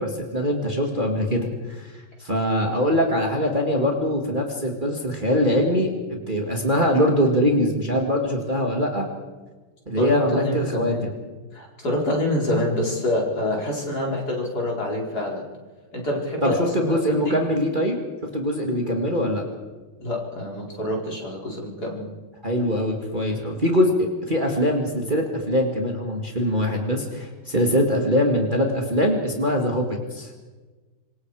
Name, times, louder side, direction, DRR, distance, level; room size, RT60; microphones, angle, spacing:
voice 1, 0.0-1.9 2.2-9.1 9.9-11.1 16.4-18.0 18.3-19.5 22.4-30.3, equal, 25° right, 1 dB, 2.3 m, -23 dB
voice 2, 10.0-11.1 11.5-15.5 15.9-17.3 20.0-22.1, left 1 dB, 45° left, -2 dB, 5.1 m, -26 dB
26.0 x 23.0 x 4.9 m, 1.3 s
omnidirectional pair, 2.3 m